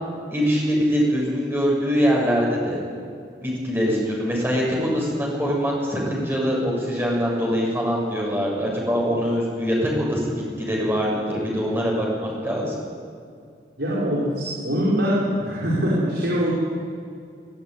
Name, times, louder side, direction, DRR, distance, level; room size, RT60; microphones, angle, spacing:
voice 1, 0.3-2.8 3.4-10.3 10.6-12.8, equal, 15° right, -3 dB, 7.1 m, -23 dB
voice 2, 13.8-16.5, equal, 85° right, -6 dB, 5.5 m, -23 dB
23.0 x 19.0 x 9.8 m, 2.4 s
head